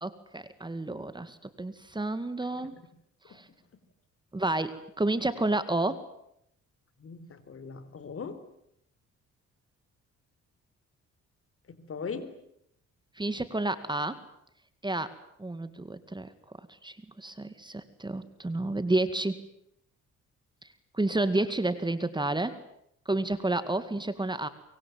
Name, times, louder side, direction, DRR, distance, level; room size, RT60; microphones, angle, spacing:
voice 1, 0.0-2.8 3.3-3.5 4.3-6.1 13.2-14.2 14.8-15.1 15.4-16.3 16.6-19.4 20.9-22.6 23.1-24.5, right 2 dB, 15° right, 12 dB, 2.1 m, -30 dB
voice 2, 7.0-8.4 11.7-12.3, left 5 dB, 45° left, 12 dB, 4.1 m, -39 dB
24.0 x 24.0 x 9.3 m, 0.75 s
cardioid pair, 90°, 30 cm